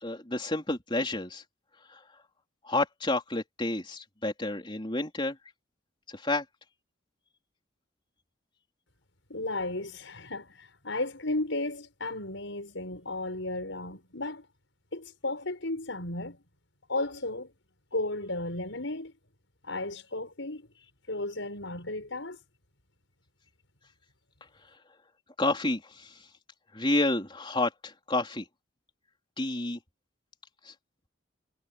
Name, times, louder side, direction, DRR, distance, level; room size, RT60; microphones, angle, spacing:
voice 1, 0.0-1.4 2.7-5.4 6.2-6.4 25.4-26.1 26.7-28.4 29.4-29.8, left 2 dB, 25° left, 3.8 m, -29 dB
voice 2, 9.3-14.4 14.9-16.4 16.9-17.5 17.9-19.1 19.6-20.7 21.1-22.4, left 2 dB, 75° left, 6.2 m, -34 dB
head